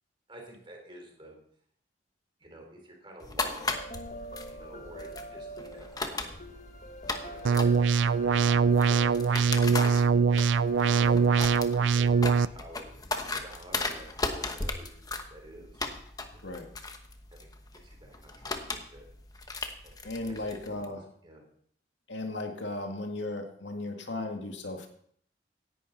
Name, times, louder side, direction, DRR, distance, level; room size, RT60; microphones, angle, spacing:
voice 1, 0.3-1.4 2.4-3.8 4.5-6.5 7.2-9.6 10.8-12.9 13.4-15.8 16.3-16.6 17.3-17.5 17.8-19.0 19.8-19.9 20.3-21.4, right 1 dB, 30° right, 2 dB, 3.6 m, -50 dB
sound 1, 3.2-20.8, left 3 dB, 20° left, 1.1 m, -37 dB
sound 2, 3.6-12.4, right 1 dB, 40° left, 1.3 m, -45 dB
sound 3, 7.5-12.5, right 5 dB, 90° right, 0.4 m, -23 dB
voice 2, 20.0-21.0 22.1-24.9, left 2 dB, 85° left, 4 dB, 2.0 m, -36 dB
17.5 x 11.0 x 4.1 m, 0.63 s
head